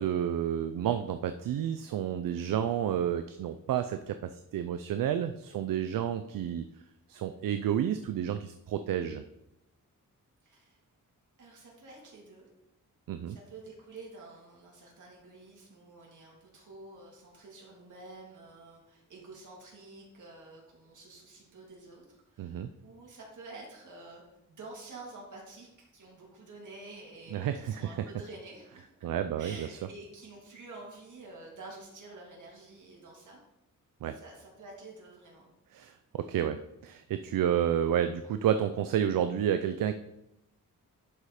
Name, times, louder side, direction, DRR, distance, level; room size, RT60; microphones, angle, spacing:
voice 1, 0.0-6.7 7.1-9.2 13.1-13.4 22.4-22.7 27.3-28.1 29.0-29.7 34.0-34.2 35.7-39.9, right 9 dB, 85° right, 9 dB, 0.5 m, -30 dB
voice 2, 10.4-10.8 11.4-12.4 13.3-24.2 24.5-28.9 29.4-33.4 34.1-35.5, right 2 dB, 65° right, -3 dB, 2.9 m, -49 dB
11.5 x 4.8 x 4.2 m, 0.89 s
cardioid pair, 100°, 33 cm